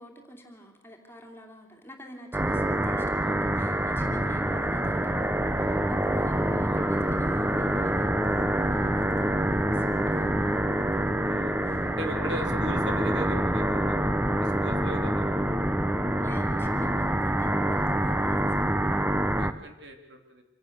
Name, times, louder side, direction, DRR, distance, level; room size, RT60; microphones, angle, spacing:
voice 1, 0.0-11.9 16.2-18.7, equal, 10° left, 1 dB, 2.8 m, -46 dB
sound 1, 2.3-19.5, right 1 dB, 10° right, 0.7 m, -26 dB
voice 2, 3.2-3.7 4.2-4.4 6.7-7.1 11.2-14.0 14.4-15.3 19.4-20.4, equal, 60° right, 5 dB, 2.8 m, -39 dB
26.0 x 17.5 x 6.7 m, 0.93 s
head